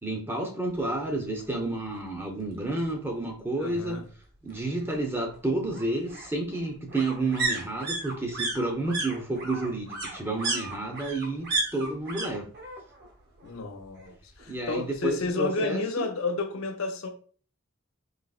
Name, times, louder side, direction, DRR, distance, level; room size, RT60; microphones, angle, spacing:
voice 1, 0.0-4.0 4.4-11.5 11.7-12.5 14.5-16.1, right 2 dB, 10° right, 0.6 m, -30 dB
sound 1, 1.4-1.5 1.9-2.0 2.2-3.2 4.5-12.3 12.5-13.1 13.4-14.4 14.7-14.8, right 3 dB, 50° right, 1.0 m, -34 dB
voice 2, 3.6-4.0 13.4-14.1 14.4-17.1, left 3 dB, 70° left, 0.5 m, -31 dB
4.0 x 2.8 x 2.4 m
head